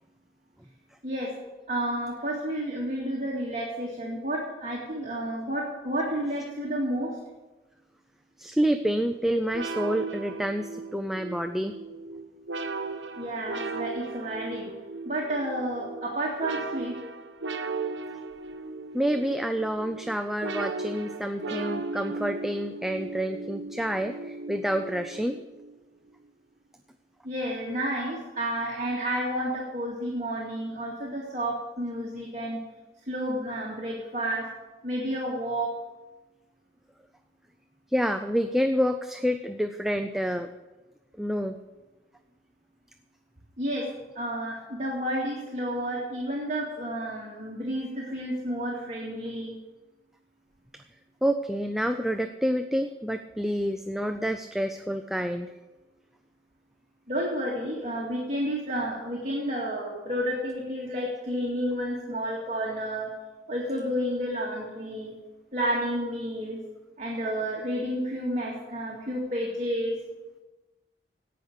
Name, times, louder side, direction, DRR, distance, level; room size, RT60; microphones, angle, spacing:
voice 1, 1.7-7.2 13.2-14.7 15.0-16.9 27.2-32.6 33.0-34.5 34.8-35.7 43.6-43.8 44.2-49.6 57.1-63.1 63.5-65.1 65.5-66.6 67.0-69.9, equal, 40° right, -3 dB, 2.1 m, -31 dB
voice 2, 8.4-11.7 18.9-25.4 37.9-40.5 41.2-41.6 50.7-50.8 51.2-55.5, equal, ahead, 7 dB, 0.4 m, -28 dB
sound 1, 9.5-25.7, right 3 dB, 90° right, 1.0 m, -37 dB
17.0 x 5.8 x 6.6 m, 1.1 s
head